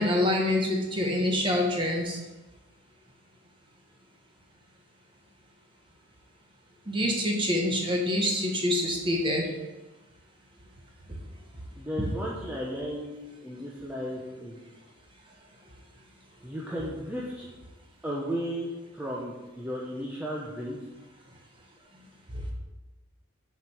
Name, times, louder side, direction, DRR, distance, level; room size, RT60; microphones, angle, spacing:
voice 1, 0.0-2.2 6.9-9.5 22.3-22.4, left 1 dB, 25° right, -1 dB, 1.3 m, -26 dB
voice 2, 11.8-14.6 16.4-17.5 18.0-20.8, equal, 10° right, -5 dB, 0.8 m, -35 dB
6.6 x 5.1 x 5.9 m, 1.1 s
head